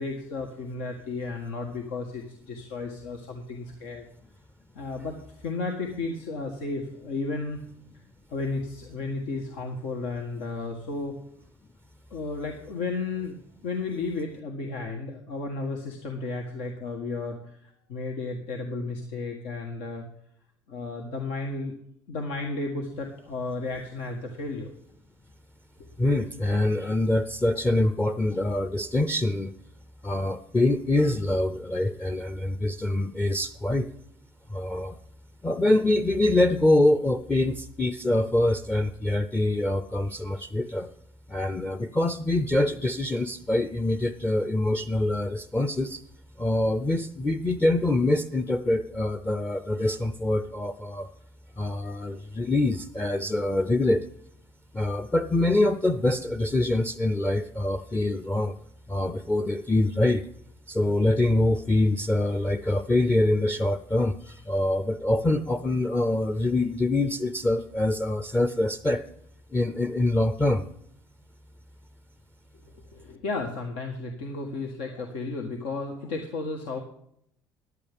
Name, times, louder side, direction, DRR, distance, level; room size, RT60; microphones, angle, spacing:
voice 1, 0.0-4.1 4.7-7.6 8.3-11.1 12.1-13.4 13.6-20.0 20.7-21.7 22.1-24.7 72.7-76.8, left 3 dB, 80° left, 2 dB, 1.5 m, -33 dB
voice 2, 26.0-29.5 30.0-33.9 34.5-35.0 35.4-40.9 41.3-46.0 46.4-51.1 51.6-54.0 54.7-58.6 58.9-60.3 60.7-69.0 69.5-70.6, left 1 dB, 15° left, 10 dB, 0.6 m, -25 dB
14.0 x 11.0 x 3.5 m, 0.71 s
supercardioid pair, 100°, 9 cm